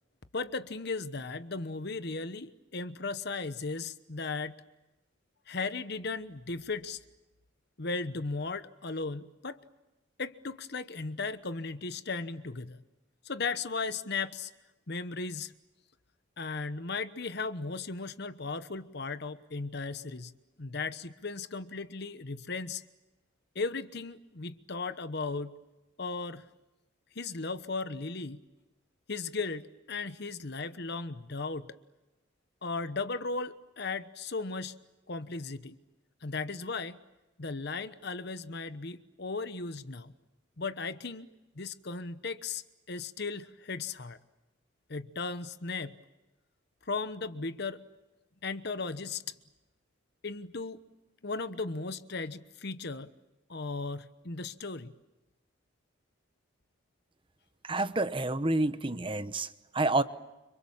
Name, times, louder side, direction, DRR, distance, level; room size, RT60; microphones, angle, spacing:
voice 1, 0.3-4.5 5.5-7.0 7.8-9.6 10.2-12.8 13.2-14.5 14.9-15.5 16.4-20.3 20.6-22.8 23.5-25.6 26.0-26.4 27.1-28.4 29.1-31.8 32.6-34.8 35.1-35.8 36.2-37.0 37.4-40.1 40.6-41.3 41.6-42.6 42.9-44.2 44.9-46.0 46.9-47.8 48.4-49.3 50.2-50.8 51.2-53.1 53.5-54.9, left 4 dB, 55° left, 12 dB, 1.1 m, -36 dB
voice 2, 57.6-60.0, right 2 dB, 25° right, 12 dB, 1.0 m, -29 dB
30.0 x 26.5 x 7.3 m, 1.0 s
head